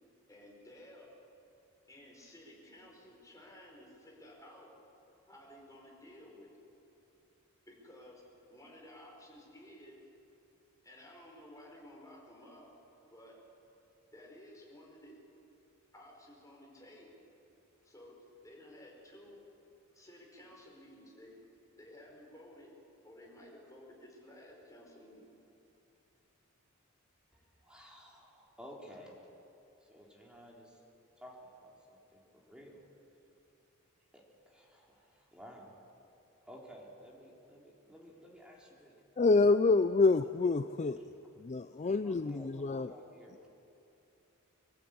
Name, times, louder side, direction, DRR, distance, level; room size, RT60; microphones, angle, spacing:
voice 1, 0.3-1.1 1.9-4.7 5.3-6.6 7.7-8.2 8.5-10.0 10.8-12.7 13.1-13.4 14.1-15.1 15.9-17.2 17.8-18.1 18.4-19.4 19.9-21.4 21.8-22.7 23.0-25.3, left 1 dB, 15° left, -2 dB, 4.8 m, -54 dB
voice 2, 27.3-29.2 29.8-30.8 31.2-32.8 34.1-35.8 36.5-39.0 41.8-43.5, equal, 5° right, -2 dB, 3.4 m, -54 dB
voice 3, 39.2-41.0 41.4-42.9, left 3 dB, 35° left, 11 dB, 0.4 m, -27 dB
25.0 x 14.5 x 8.7 m, 2.8 s
head